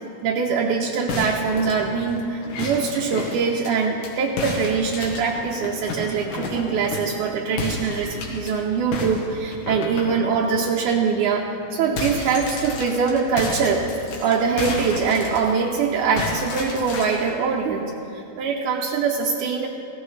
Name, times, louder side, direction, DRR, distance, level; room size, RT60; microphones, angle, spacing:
voice 1, 0.2-13.8 14.2-19.7, right 5 dB, 80° right, -1 dB, 2.2 m, -23 dB
sound 1, 1.1-4.1 4.4-7.2 7.6-8.5 8.9-10.7 11.1-11.2 11.5-15.8 16.2-17.3, left 3 dB, 90° left, 3.0 m, -32 dB
16.0 x 14.5 x 3.2 m, 2.8 s
omnidirectional pair, 3.6 m